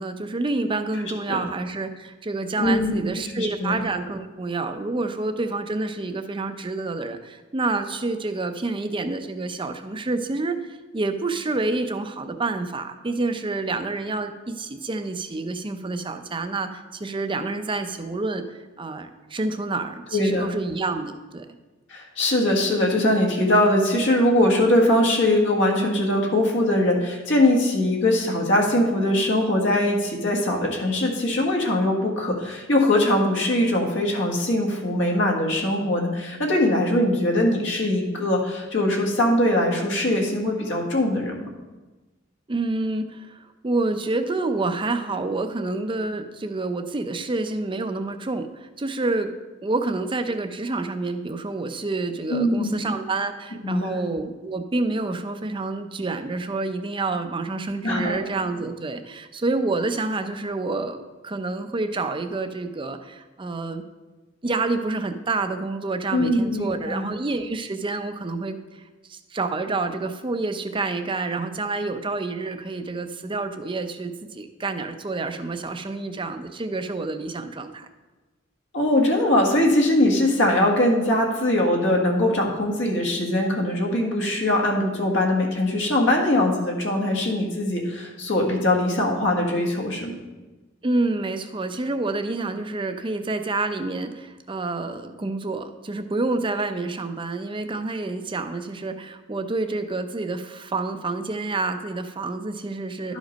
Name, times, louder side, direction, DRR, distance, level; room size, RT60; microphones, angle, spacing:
voice 1, 0.0-21.5 42.5-49.3 49.6-63.8 64.4-68.6 69.1-77.9 90.8-103.2, right 3 dB, 25° right, 8 dB, 0.6 m, -28 dB
voice 2, 2.6-3.0 3.3-3.8 20.1-20.5 21.9-41.4 52.3-52.9 53.6-54.0 57.8-58.2 66.1-67.1 78.7-90.2 103.1-103.2, left 1 dB, 65° left, 0 dB, 1.6 m, -21 dB
11.5 x 5.1 x 5.2 m, 1.2 s
head